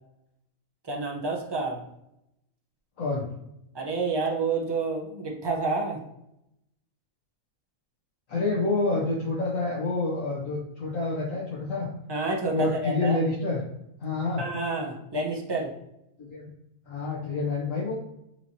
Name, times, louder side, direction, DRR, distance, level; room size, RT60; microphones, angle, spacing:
voice 1, 0.8-1.8 3.7-6.0 12.1-13.2 14.4-15.7, right 3 dB, 35° right, 0 dB, 0.4 m, -29 dB
voice 2, 8.3-11.9 12.5-13.6 14.0-14.4 16.2-16.5 16.9-17.9, left 3 dB, 65° left, -5 dB, 1.3 m, -28 dB
6.1 x 3.0 x 2.7 m, 0.83 s
omnidirectional pair, 1.6 m